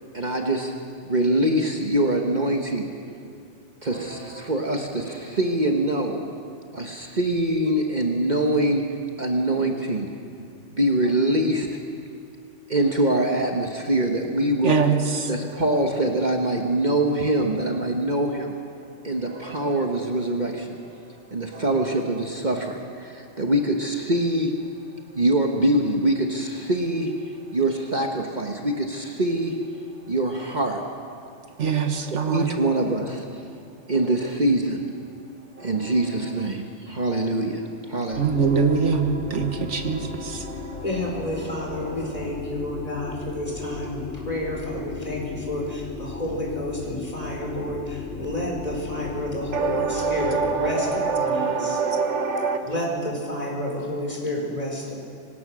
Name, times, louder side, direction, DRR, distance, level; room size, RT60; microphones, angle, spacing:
voice 1, 0.1-0.7 1.0-2.9 3.8-6.3 6.7-10.1 10.7-11.8 12.7-14.8 15.3-18.5 19.0-20.8 21.3-24.6 25.1-27.2 27.5-29.6 30.1-30.8 32.1-33.2 33.9-34.9 35.6-38.2, right 1 dB, 40° right, 2 dB, 1.5 m, -24 dB
voice 2, 14.6-15.4 19.3-19.7 21.5-21.6 31.6-32.5 35.6-35.8 38.2-40.8 41.8-41.9 49.5-52.7, right 5 dB, 80° right, 6 dB, 1.8 m, -24 dB
sound 1, 38.1-50.8, left 4 dB, 85° left, 2.5 m, -36 dB
voice 3, 40.8-51.8 52.6-55.0, left 1 dB, 30° left, -2 dB, 5.1 m, -30 dB
24.0 x 19.0 x 6.4 m, 2.4 s
omnidirectional pair, 1.2 m